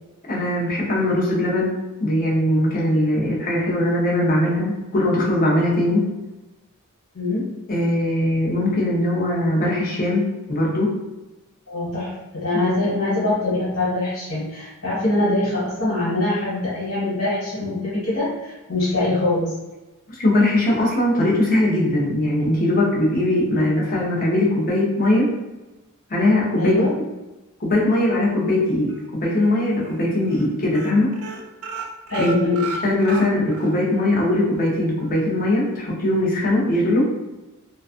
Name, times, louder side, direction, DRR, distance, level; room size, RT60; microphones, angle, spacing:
voice 1, 0.3-1.7 2.0-6.1 7.7-10.9 20.1-25.3 26.1-27.0 27.6-31.1 32.2-32.5 32.8-37.1, left 1 dB, 40° left, -4 dB, 0.7 m, -20 dB
voice 2, 7.1-7.5 11.7-19.5 23.6-23.7 26.6-26.9 32.1-32.7 36.9-37.0, left 2 dB, 75° left, -11 dB, 1.4 m, -23 dB
sound 1, 28.9-29.5 29.8-30.0 30.3-30.5 30.7-33.7 34.1-34.2 34.5-34.6, right 4 dB, 70° right, 0.4 m, -34 dB
2.4 x 2.3 x 2.4 m, 1.1 s
head